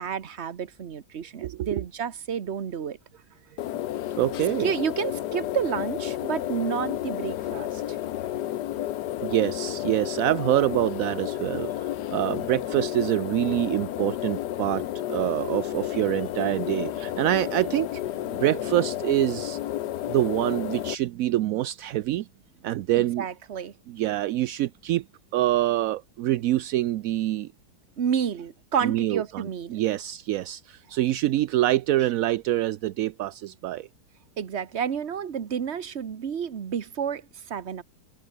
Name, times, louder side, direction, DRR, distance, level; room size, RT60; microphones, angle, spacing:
voice 1, 0.0-3.0 4.6-8.0 18.2-18.4 22.9-23.7 28.0-29.8 34.4-37.2 37.5-37.8, right 7 dB, 45° right, 1.3 m, -30 dB
voice 2, 1.4-1.8 4.2-4.7 9.2-18.0 18.4-19.6 20.1-22.3 22.6-23.2 23.9-25.0 25.3-27.5 28.8-33.9, right 14 dB, 70° right, 0.9 m, -26 dB
sound 1, 3.6-21.0, left 13 dB, 80° left, 1.4 m, -31 dB
omnidirectional pair, 1.8 m